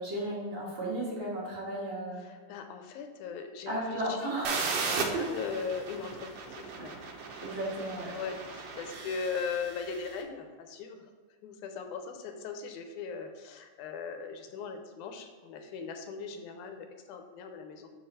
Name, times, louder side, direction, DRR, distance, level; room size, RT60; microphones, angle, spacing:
voice 1, 0.0-2.2 3.7-4.7 6.8-6.9 7.4-8.1, right 1 dB, 45° right, -6 dB, 2.4 m, -34 dB
voice 2, 2.2-4.4 4.9-7.0 8.1-11.1 11.4-17.9, left 5 dB, 85° left, 5 dB, 2.2 m, -39 dB
sound 1, 4.4-10.1, right 4 dB, 75° right, 2.1 m, -36 dB
6.8 x 5.8 x 4.1 m, 1.5 s
omnidirectional pair, 3.4 m